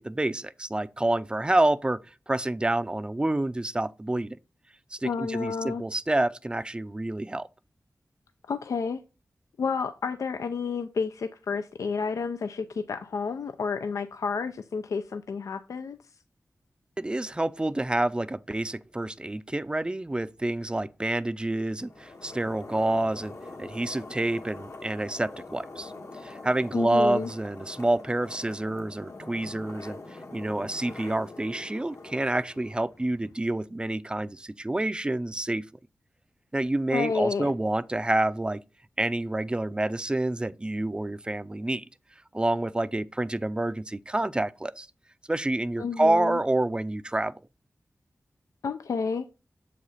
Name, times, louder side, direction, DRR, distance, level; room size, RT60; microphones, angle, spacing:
voice 1, 0.0-2.0 2.3-4.4 4.9-7.5 17.0-23.3 23.6-25.9 26.2-30.0 30.3-35.6 36.5-38.6 39.0-41.9 42.3-44.9 45.3-47.3, right 1 dB, 15° right, 0.4 m, -28 dB
voice 2, 5.0-5.8 8.5-9.0 9.6-16.0 26.7-27.3 36.9-37.5 45.8-46.4 48.6-49.2, left 5 dB, 85° left, 0.4 m, -30 dB
sound 1, 21.8-33.4, left 2 dB, 70° left, 1.5 m, -44 dB
6.8 x 5.0 x 4.1 m
cardioid pair, 60°, 5 cm